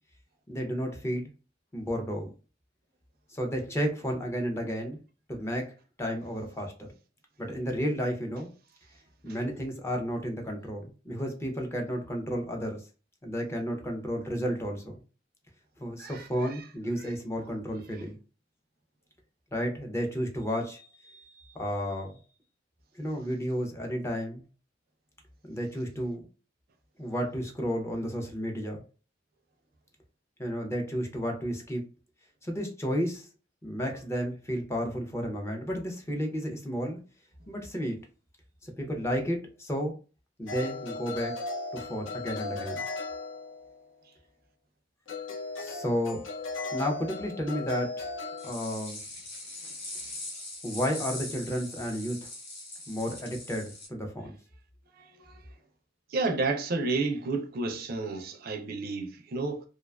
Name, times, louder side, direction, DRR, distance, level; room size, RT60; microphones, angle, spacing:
voice 1, 0.5-1.3 1.7-2.3 3.3-5.0 5.3-5.7 6.0-6.9 7.4-8.5 9.2-12.8 13.2-14.9 15.8-18.2 19.5-21.2 21.5-22.2 23.0-24.4 25.4-26.2 27.0-28.8 30.4-31.8 32.4-33.3 33.6-37.0 37.5-38.0 38.6-39.9 40.4-41.4 41.7-42.8 45.6-46.2 46.7-48.1 48.4-49.0 50.6-52.3 52.9-54.4, equal, 15° left, 0.5 m, -32 dB
sound 1, 40.5-43.8 45.1-48.5, left 3 dB, 85° left, 0.5 m, -37 dB
sound 2, 48.4-53.9, left 2 dB, 60° left, 1.0 m, -41 dB
voice 2, 56.1-59.6, right 3 dB, 50° right, 0.4 m, -30 dB
2.4 x 2.2 x 2.3 m
head